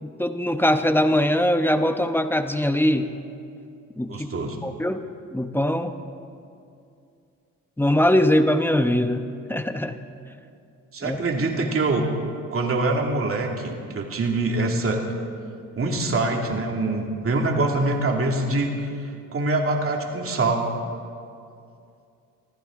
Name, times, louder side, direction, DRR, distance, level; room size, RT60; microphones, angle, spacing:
voice 1, 0.0-3.1 4.0-4.3 4.6-5.0 5.3-5.9 7.8-10.0 11.0-11.2, left 1 dB, 5° left, 8 dB, 1.1 m, -22 dB
voice 2, 4.1-4.6 10.9-12.1 12.5-15.0 15.8-18.7 19.3-20.7, right 2 dB, 40° right, 1 dB, 2.6 m, -24 dB
24.5 x 15.0 x 3.8 m, 2.5 s
supercardioid pair, 75°, 34 cm